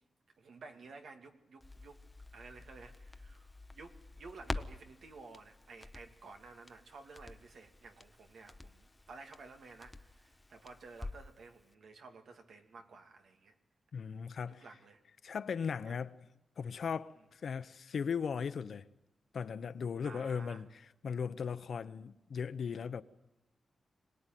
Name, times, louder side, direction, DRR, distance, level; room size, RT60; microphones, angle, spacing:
voice 1, 0.4-2.0 2.3-13.5 14.5-15.0 15.9-16.0 20.0-20.6, right 4 dB, 80° right, 2.6 m, -53 dB
Crackle, 1.6-11.4 11.7-11.8, left 2 dB, 15° left, 0.9 m, -48 dB
voice 2, 13.9-14.6 15.2-16.2 16.6-18.9 19.3-23.0, left 6 dB, 70° left, 1.0 m, -38 dB
26.0 x 19.0 x 9.3 m
wide cardioid pair, 110°, 0 cm